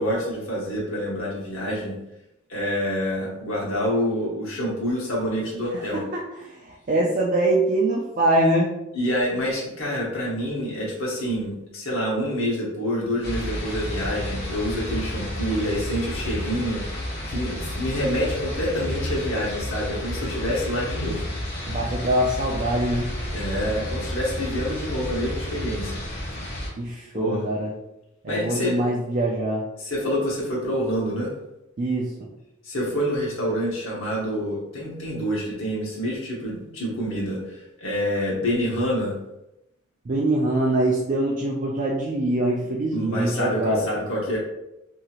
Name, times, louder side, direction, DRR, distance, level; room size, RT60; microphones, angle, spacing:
voice 1, 0.0-1.9 2.5-6.0 8.9-21.2 23.3-25.9 27.1-27.5 28.3-28.8 29.8-31.3 32.6-39.1 42.6-44.4, equal, 85° left, -4 dB, 0.9 m, -27 dB
voice 2, 5.7-6.2 6.6-8.7 21.6-23.1 26.8-27.7 28.2-29.6 31.8-32.1 40.1-43.8, right 1 dB, 40° right, -3 dB, 0.4 m, -23 dB
sound 1, 13.2-26.7, left 1 dB, 50° left, 0.8 m, -31 dB
2.7 x 2.4 x 2.9 m, 0.88 s
head